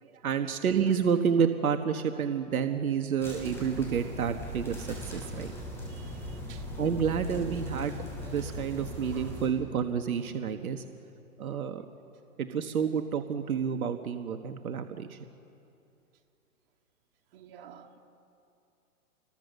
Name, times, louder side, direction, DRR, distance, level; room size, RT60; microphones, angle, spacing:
voice 1, 0.0-5.5 6.8-10.8 11.4-11.9 12.4-15.2, right 7 dB, 75° right, 1.6 m, -29 dB
sound 1, 3.2-9.5, left 1 dB, 5° left, 7.0 m, -39 dB
voice 2, 5.9-6.7 12.5-12.6 17.3-18.0, right 9 dB, 40° right, 2.5 m, -52 dB
28.5 x 22.5 x 6.7 m
hypercardioid pair, 140°, 43 cm